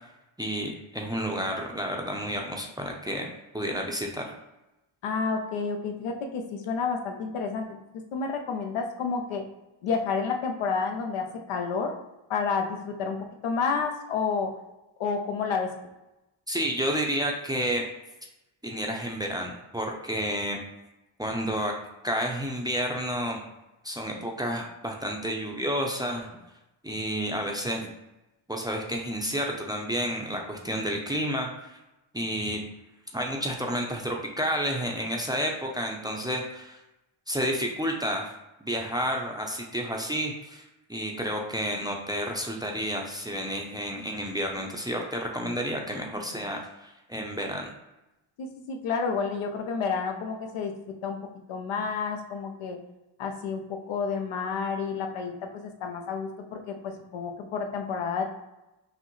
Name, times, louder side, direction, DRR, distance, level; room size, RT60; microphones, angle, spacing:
voice 1, 0.4-3.3 3.5-4.3 16.5-17.8 18.6-20.6 21.2-21.8 22.0-23.4 23.8-26.3 26.8-27.9 28.5-31.8 32.1-32.6 33.1-36.8 37.3-38.3 38.6-40.6 40.9-47.7, equal, 10° right, 0 dB, 0.5 m, -30 dB
voice 2, 5.0-7.7 8.1-9.4 9.8-11.9 12.3-14.5 15.0-15.7 48.4-51.2 51.5-52.8 53.2-58.2, left 5 dB, 80° left, 3 dB, 0.8 m, -30 dB
5.9 x 2.0 x 3.1 m, 0.97 s
cardioid pair, 95°, 49 cm